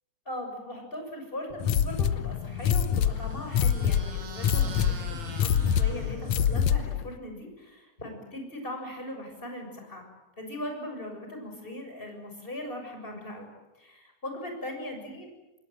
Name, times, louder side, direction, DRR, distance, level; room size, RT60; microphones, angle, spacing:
voice 1, 0.2-10.0 10.4-15.3, left 1 dB, 10° left, 3 dB, 6.7 m, -39 dB
sound 1, 1.6-7.0, left 8 dB, 80° left, 1.6 m, -26 dB
sound 2, 2.4-7.0, right 5 dB, 65° right, 5.4 m, -45 dB
27.0 x 21.0 x 9.4 m, 1.0 s
omnidirectional pair, 4.7 m